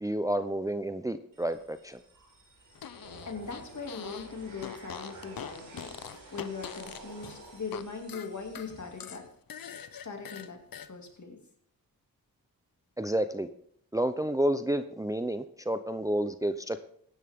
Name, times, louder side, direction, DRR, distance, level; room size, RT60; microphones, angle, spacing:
voice 1, 0.0-2.0 13.0-13.5 13.9-16.8, right 1 dB, 10° right, 10 dB, 0.6 m, -30 dB
sound 1, 1.3-9.3, right 2 dB, 60° right, 4.6 m, -51 dB
Fart, 2.7-4.3 4.6-7.8 8.1-10.9, left 8 dB, 65° left, 0.8 m, -43 dB
voice 2, 3.2-9.3 10.0-10.6 10.9-11.4, left 4 dB, 50° left, 2 dB, 2.6 m, -40 dB
14.5 x 10.5 x 3.7 m, 0.66 s
cardioid pair, 55°, 38 cm